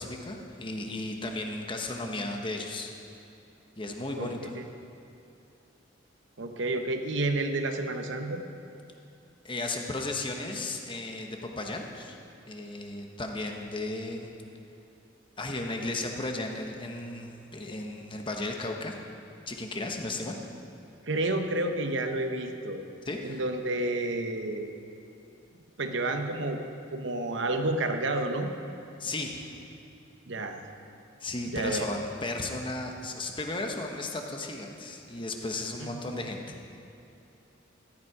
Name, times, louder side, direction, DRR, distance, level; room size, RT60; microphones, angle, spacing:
voice 1, 0.0-2.9 3.8-4.5 9.4-12.2 12.5-14.3 15.4-19.0 19.5-20.3 23.1-23.4 29.0-29.6 31.2-36.8, left 2 dB, 25° left, 2 dB, 1.1 m, -35 dB
voice 2, 6.4-8.5 21.0-22.9 23.2-24.7 25.8-26.6 26.9-28.5 30.3-30.6 31.5-31.8 35.8-36.2, right 2 dB, 65° right, 6 dB, 0.9 m, -30 dB
14.5 x 10.5 x 4.8 m, 2.8 s
head